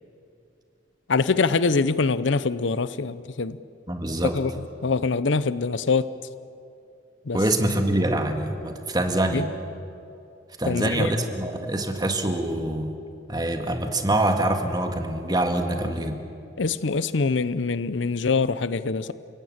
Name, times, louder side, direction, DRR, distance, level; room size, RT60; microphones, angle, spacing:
voice 1, 1.1-3.6 4.3-6.1 7.3-7.4 9.3-9.4 10.7-11.1 16.6-19.1, left 4 dB, 80° left, 15 dB, 0.7 m, -24 dB
voice 2, 3.9-4.4 7.3-9.4 10.6-12.9 13.3-16.2, right 1 dB, 20° right, 5 dB, 1.9 m, -25 dB
29.5 x 17.5 x 8.8 m, 2.6 s
head